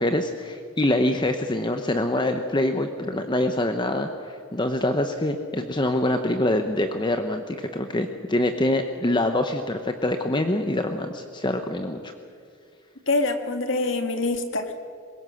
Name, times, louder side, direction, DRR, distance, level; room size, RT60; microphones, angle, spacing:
voice 1, 0.0-12.1, left 1 dB, 20° left, 6 dB, 0.9 m, -25 dB
voice 2, 13.1-14.7, left 2 dB, 60° left, 6 dB, 2.0 m, -25 dB
23.0 x 21.0 x 6.3 m, 2.3 s
head